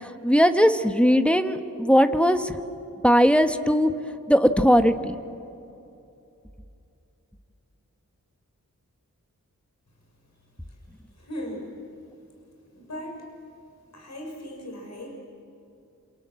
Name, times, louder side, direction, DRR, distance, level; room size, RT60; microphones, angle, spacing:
voice 1, 0.0-2.6 3.0-3.9 4.3-5.2, equal, 5° left, 7 dB, 1.5 m, -19 dB
voice 2, 11.2-11.7 12.7-13.3 13.9-15.1, equal, 55° left, 1 dB, 6.4 m, -37 dB
28.0 x 26.5 x 7.8 m, 2.7 s
cardioid pair, 60°, 33 cm